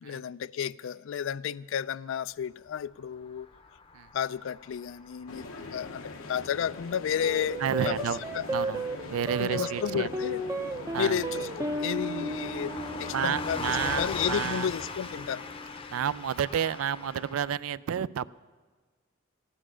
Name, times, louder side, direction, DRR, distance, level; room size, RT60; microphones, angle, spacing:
voice 1, 0.0-3.5 4.1-5.5 5.7-8.0 8.3-8.5 9.4-10.4 11.0-12.7 13.0-15.4, left 8 dB, 65° left, 0.3 m, -32 dB
Car passing by / Truck, 3.2-17.6, left 3 dB, 30° left, 0.7 m, -41 dB
sound 1, 5.3-13.9, left 3 dB, 85° left, 1.0 m, -43 dB
sound 2, 7.2-15.9, right 1 dB, 15° right, 0.5 m, -35 dB
voice 2, 7.6-8.2 8.5-10.1 10.9-11.2 13.1-14.7 15.9-18.3, right 8 dB, 85° right, 0.4 m, -31 dB
15.0 x 11.0 x 6.2 m
head